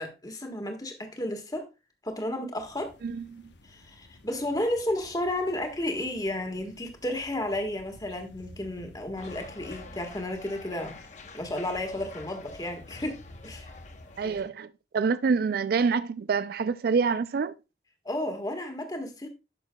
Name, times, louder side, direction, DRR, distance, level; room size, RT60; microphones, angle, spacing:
voice 1, 0.0-1.7 2.0-2.9 3.6-11.0 11.3-13.7 14.2-14.3 18.0-19.3, left 1 dB, 20° left, 1.5 m, -32 dB
sound 1, 2.6-14.4, left 1 dB, 85° left, 0.9 m, -51 dB
voice 2, 3.0-3.4 14.2-14.7 14.9-17.5, right 5 dB, 60° right, 0.4 m, -26 dB
sound 2, 9.2-14.5, left 4 dB, 45° left, 1.0 m, -48 dB
11.0 x 6.4 x 2.3 m
head